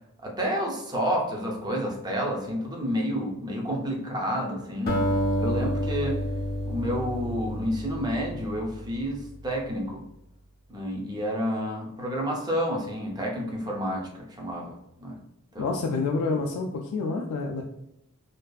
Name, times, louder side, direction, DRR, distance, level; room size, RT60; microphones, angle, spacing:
voice 1, 0.2-5.0 5.4-6.2 6.6-10.0 10.7-15.2 15.5-15.8, equal, 20° right, -1 dB, 0.5 m, -30 dB
Acoustic guitar, 4.9-9.3, equal, 45° left, 0.6 m, -29 dB
voice 2, 15.6-17.6, left 3 dB, 85° left, 3 dB, 0.3 m, -28 dB
2.5 x 2.3 x 2.2 m, 0.83 s
head